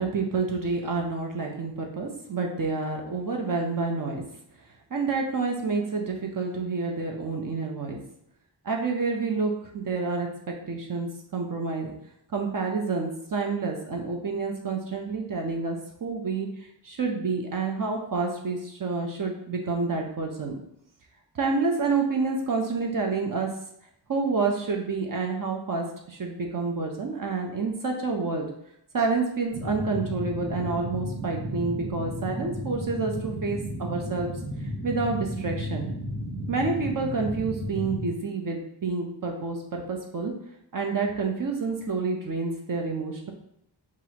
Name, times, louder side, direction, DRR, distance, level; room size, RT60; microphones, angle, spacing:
voice 1, 0.0-4.2 4.9-8.0 8.6-11.9 12.3-16.5 16.8-20.6 21.3-23.5 24.1-28.5 28.9-34.3 34.8-35.9 36.5-40.3 40.7-43.3, right 4 dB, 45° right, 1 dB, 0.6 m, -28 dB
sound 1, 29.5-38.1, equal, 20° right, 1.3 m, -34 dB
5.9 x 2.5 x 2.8 m, 0.73 s
wide cardioid pair, 165°, 45 cm